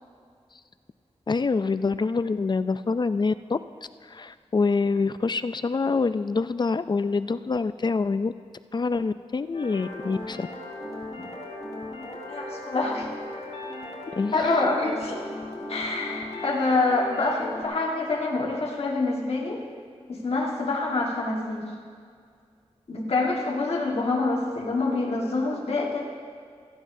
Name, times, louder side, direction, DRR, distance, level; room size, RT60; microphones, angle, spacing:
voice 1, 1.3-3.6 4.1-8.3 8.7-10.5 14.2-14.3, left 4 dB, 40° left, 13 dB, 0.4 m, -25 dB
sound 1, 9.5-17.7, left 2 dB, 85° left, 3.2 m, -37 dB
voice 2, 12.1-13.1 14.3-15.2 15.7-19.6 20.1-21.7 22.9-26.1, left 3 dB, 65° left, -2 dB, 1.6 m, -26 dB
16.5 x 13.5 x 2.7 m, 2.1 s
wide cardioid pair, 65°, 11 cm